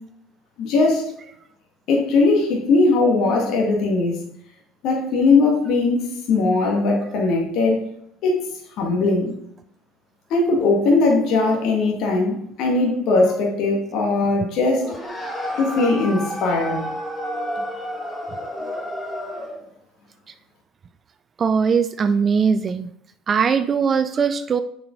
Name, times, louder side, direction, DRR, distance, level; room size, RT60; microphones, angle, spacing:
voice 1, 0.6-1.1 1.9-4.2 4.8-7.8 8.2-8.5 8.8-9.3 10.3-14.9 15.6-16.8, left 3 dB, 60° left, 0 dB, 1.6 m, -19 dB
sound 1, 14.8-19.7, equal, 15° left, 1.9 m, -30 dB
voice 2, 21.4-22.9 23.3-24.6, right 6 dB, 35° right, 11 dB, 0.4 m, -20 dB
6.9 x 5.0 x 3.8 m, 0.72 s
hypercardioid pair, 70°, 0 cm